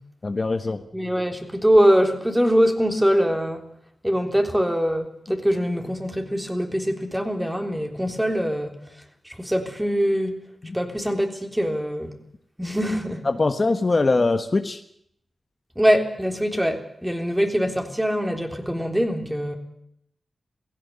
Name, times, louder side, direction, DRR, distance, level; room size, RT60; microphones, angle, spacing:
voice 1, 0.2-0.8 10.6-10.8 13.2-14.8, left 3 dB, 45° left, 1.3 m, -22 dB
voice 2, 0.9-3.6 4.0-8.8 9.3-10.5 10.7-12.1 12.6-13.3 15.8-19.6, equal, 5° right, 3.6 m, -23 dB
17.0 x 16.0 x 9.7 m
cardioid pair, 60°, 0 cm